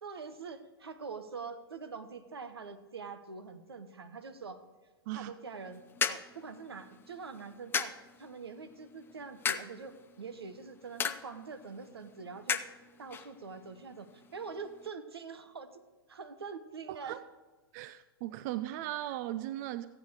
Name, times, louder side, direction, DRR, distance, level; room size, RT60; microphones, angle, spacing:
voice 1, 0.0-4.6 5.1-12.6 13.0-15.8 16.1-17.2, right 5 dB, 80° right, 10 dB, 1.0 m, -44 dB
sound 1, 5.5-14.9, left 7 dB, 15° left, 0.5 m, -39 dB
voice 2, 16.9-17.2 17.7-19.9, right 14 dB, 45° right, 14 dB, 0.4 m, -37 dB
14.5 x 8.7 x 4.7 m, 1.2 s
figure-of-eight pair, 100°, 13 cm